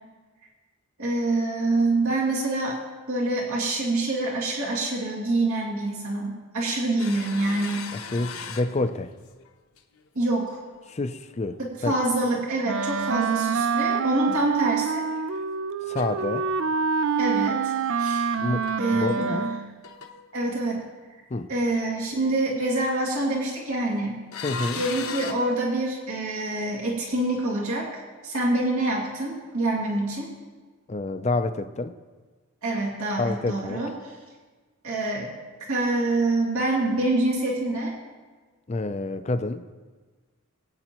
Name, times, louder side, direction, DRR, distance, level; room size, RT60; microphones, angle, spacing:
voice 1, 1.0-2.8 3.1-7.9 10.1-10.6 11.6-15.1 17.2-18.3 18.8-19.6 20.3-20.8 21.5-24.2 24.8-30.3 32.6-34.1 34.8-35.3 35.7-38.0, right 2 dB, 75° right, -3 dB, 2.2 m, -26 dB
sound 1, 7.0-9.5 9.8-10.4 10.7-10.9 12.9-14.0 14.4-15.4 15.9-16.9 17.8-17.9 18.4-18.5 18.6-18.8 19.1-19.6 19.8-20.3 23.1-23.9 24.3-25.3, left 5 dB, 75° left, 0.9 m, -39 dB
voice 2, 7.9-9.1 10.9-11.9 15.9-16.5 18.4-19.5 21.3-21.5 24.4-24.8 30.9-31.9 33.2-33.8 38.7-39.6, left 2 dB, 30° left, 10 dB, 0.4 m, -28 dB
Wind instrument woodwind instrument, 12.7-19.8, right 6 dB, 60° right, 0.4 m, -26 dB
21.0 x 9.0 x 3.0 m, 1.4 s
head